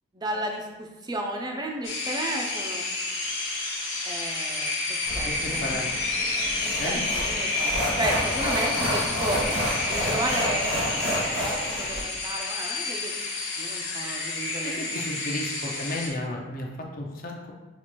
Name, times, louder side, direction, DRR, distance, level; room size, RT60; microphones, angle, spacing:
voice 1, 0.1-2.8 4.0-4.7 5.1-5.6 6.8-7.7 8.0-9.4 9.9-13.1 13.6-15.2, right 1 dB, 20° right, 1 dB, 0.4 m, -33 dB
sound 1, 1.8-16.1, left 3 dB, 60° left, 1.1 m, -30 dB
sound 2, 5.1-12.0, equal, 80° right, 1.4 m, -30 dB
voice 2, 5.2-5.9 6.8-7.0 14.6-17.5, left 1 dB, 40° left, 0 dB, 0.6 m, -33 dB
6.0 x 2.5 x 2.9 m, 1.2 s
head